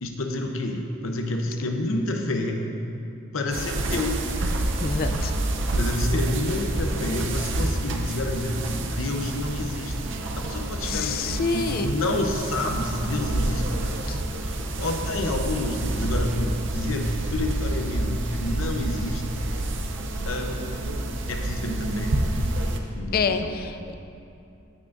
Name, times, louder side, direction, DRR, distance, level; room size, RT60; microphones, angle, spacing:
voice 1, 0.0-2.7 3.3-4.2 5.7-9.9 10.4-14.0 14.4-19.3 20.3-20.9 21.3-22.1 22.9-23.5, left 2 dB, 80° left, 3 dB, 0.8 m, -29 dB
sound 1, 3.5-22.8, right 1 dB, 65° right, 0.6 m, -28 dB
voice 2, 4.8-5.3 10.8-11.9 14.0-14.2 23.1-23.9, left 5 dB, 50° left, 9 dB, 0.4 m, -27 dB
16.5 x 6.0 x 2.6 m, 2.7 s
head